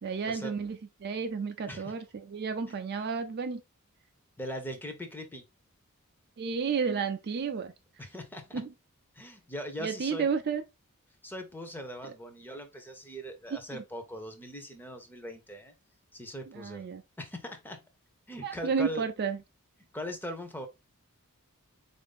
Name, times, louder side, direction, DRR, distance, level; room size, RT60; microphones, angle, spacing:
voice 1, 0.0-3.6 6.4-7.7 8.5-8.7 9.8-10.6 13.7-13.8 16.5-17.0 18.4-19.4, right 5 dB, 45° right, 0.4 m, -32 dB
voice 2, 4.4-5.4 8.0-8.6 9.1-10.3 11.2-15.7 16.1-16.9 17.2-17.8 18.3-19.0 19.9-20.7, equal, 10° left, 0.7 m, -40 dB
4.4 x 2.6 x 3.6 m
head